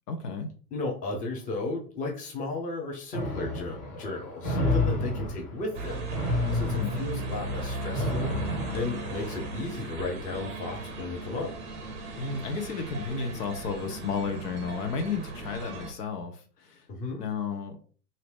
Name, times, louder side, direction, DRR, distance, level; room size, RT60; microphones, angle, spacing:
voice 1, 0.1-0.5 6.7-7.0 12.2-16.8 17.2-18.0, left 5 dB, 65° left, 6 dB, 0.9 m, -33 dB
voice 2, 0.7-11.5 16.9-17.2, left 3 dB, 15° left, 0 dB, 0.8 m, -35 dB
sound 1, 3.1-9.6, left 2 dB, 50° left, 1.6 m, -31 dB
sound 2, 5.7-15.9, right 2 dB, 20° right, 0.6 m, -37 dB
2.7 x 2.7 x 3.4 m, 0.41 s
hypercardioid pair, 110°, 50 cm